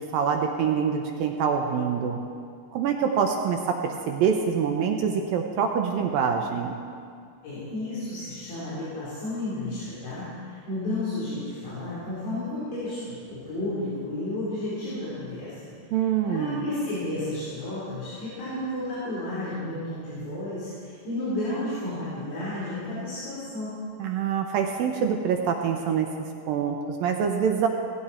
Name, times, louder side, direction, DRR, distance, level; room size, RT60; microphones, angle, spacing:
voice 1, 0.0-2.2 2.7-6.8 15.9-16.6 24.0-26.1 26.5-27.7, right 7 dB, 75° right, 3 dB, 2.3 m, -25 dB
voice 2, 7.4-23.8, left 1 dB, 85° left, -12 dB, 6.2 m, -32 dB
17.5 x 16.5 x 4.4 m, 2.2 s
omnidirectional pair, 4.6 m